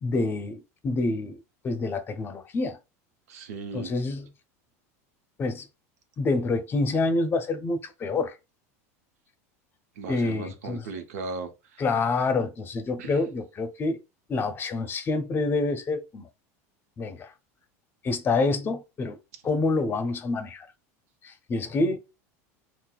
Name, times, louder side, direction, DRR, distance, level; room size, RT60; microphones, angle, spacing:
voice 1, 0.0-2.8 3.7-4.3 5.4-5.6 6.2-8.3 10.1-10.8 11.8-14.0 14.3-16.3 17.0-17.3 18.0-19.2 19.4-20.7 21.2-22.0, left 3 dB, 25° left, 0.6 m, -27 dB
voice 2, 3.3-3.9 10.0-11.8 13.0-13.2, right 4 dB, 90° right, 0.7 m, -37 dB
5.7 x 2.1 x 2.3 m
supercardioid pair, 120°, 8 cm